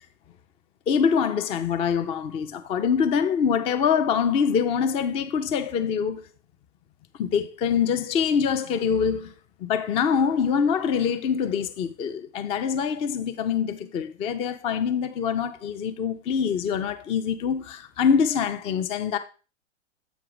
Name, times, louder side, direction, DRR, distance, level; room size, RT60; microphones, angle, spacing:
voice 1, 0.9-6.2 7.2-9.3 9.6-19.2, left 7 dB, 15° left, 0.4 m, -24 dB
8.0 x 4.8 x 4.7 m
hypercardioid pair, 105°, 38 cm